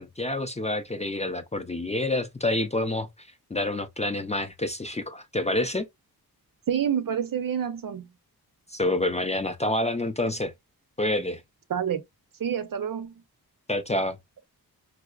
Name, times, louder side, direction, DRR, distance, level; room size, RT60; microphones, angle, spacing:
voice 1, 0.0-5.9 8.7-10.5 11.0-11.4 13.7-14.2, left 1 dB, 20° left, 0.4 m, -28 dB
voice 2, 6.7-8.1 11.7-12.0 12.4-13.2, right 8 dB, 60° right, 0.7 m, -28 dB
5.2 x 2.0 x 2.3 m
wide cardioid pair, 105°, 38 cm